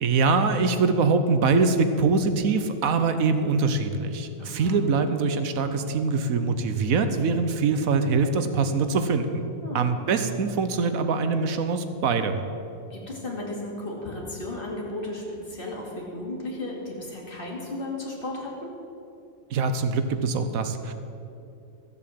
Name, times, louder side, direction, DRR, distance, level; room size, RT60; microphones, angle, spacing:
voice 1, 0.0-9.5 9.7-12.4 19.5-20.9, right 4 dB, 85° right, 9 dB, 1.3 m, -23 dB
voice 2, 4.4-4.8 9.6-9.9 12.9-18.7, left 2 dB, 40° left, -2 dB, 2.5 m, -35 dB
14.0 x 7.5 x 7.7 m, 2.7 s
omnidirectional pair, 1.4 m